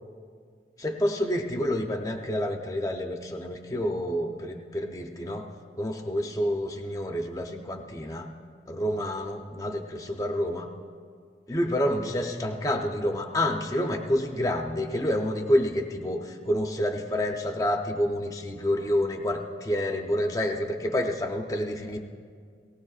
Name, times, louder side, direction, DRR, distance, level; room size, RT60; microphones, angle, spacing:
voice 1, 0.8-5.5 5.8-8.3 8.7-10.7 11.5-22.0, left 1 dB, 20° left, 3 dB, 0.7 m, -28 dB
18.0 x 18.0 x 2.4 m, 2.1 s
head